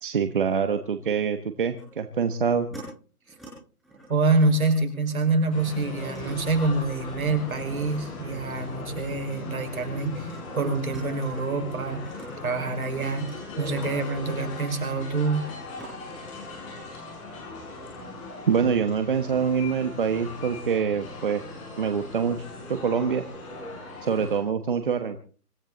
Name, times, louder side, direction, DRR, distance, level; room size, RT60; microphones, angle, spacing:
voice 1, 0.0-2.7 18.5-21.4 21.8-23.2 24.0-25.2, right 6 dB, 35° right, 9 dB, 1.2 m, -25 dB
sound 1, 1.8-1.9 2.4-2.8 3.2-3.5 3.8-12.3 12.6-15.5 15.8-15.9, right 2 dB, ahead, 6.3 m, -48 dB
voice 2, 4.1-10.3 10.6-12.0 12.4-13.3 13.6-15.5, right 3 dB, 65° right, 6 dB, 5.2 m, -26 dB
sound 2, 5.5-24.4, left 2 dB, 20° left, 6.9 m, -39 dB
25.5 x 13.5 x 4.0 m, 0.40 s
hypercardioid pair, 165°, 45 cm